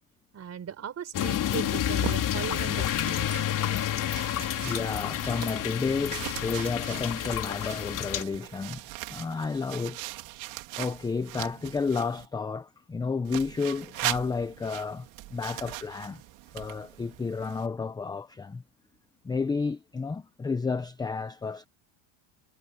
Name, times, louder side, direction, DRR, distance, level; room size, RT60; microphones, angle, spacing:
voice 1, 0.3-3.5, right 8 dB, 30° right, 4.4 m, -38 dB
sound 1, 1.1-8.2, left 11 dB, 40° left, 3.3 m, -29 dB
sound 2, 1.6-12.3 13.2-17.7, right 19 dB, 65° right, 2.8 m, -40 dB
voice 2, 4.6-8.8 9.1-10.0 10.8-16.2 16.5-18.6 19.2-21.7, left 4 dB, 10° left, 0.5 m, -31 dB
cardioid pair, 150°, 50 cm